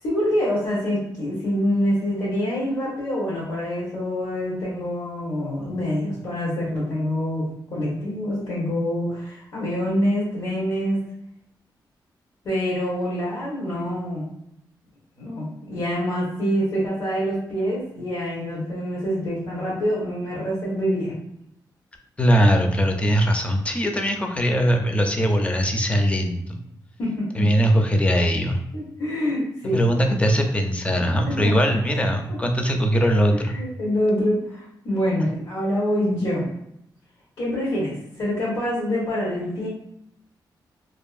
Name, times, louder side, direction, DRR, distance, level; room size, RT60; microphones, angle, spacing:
voice 1, 0.0-7.5 7.7-11.0 12.4-14.3 15.2-21.1 27.0-27.5 28.7-29.8 31.3-32.0 32.3-32.4 33.5-36.5 37.4-39.7, equal, 80° left, -7 dB, 0.9 m, -26 dB
voice 2, 22.2-26.6 27.3-28.6 29.7-33.6, equal, 15° left, 3 dB, 0.4 m, -21 dB
2.6 x 2.4 x 2.4 m, 0.75 s
wide cardioid pair, 105°, 8 cm